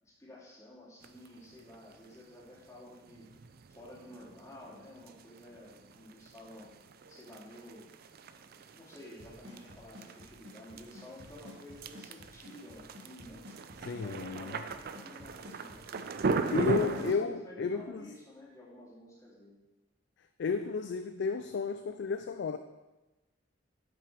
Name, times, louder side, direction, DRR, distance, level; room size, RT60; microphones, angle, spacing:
voice 1, 0.0-3.3 3.7-6.7 7.1-7.9 8.2-13.4 13.9-15.8 16.3-19.6, left 1 dB, 15° left, -6 dB, 2.5 m, -51 dB
sound 1, 1.0-17.1, right 4 dB, 50° right, 0.4 m, -39 dB
Drum kit / Snare drum / Bass drum, 9.2-17.2, left 2 dB, 65° right, 1.9 m, -50 dB
voice 2, 13.8-14.6 16.5-18.1 20.4-22.6, left 5 dB, 60° left, 9 dB, 0.4 m, -33 dB
8.3 x 6.0 x 4.6 m, 1.1 s
head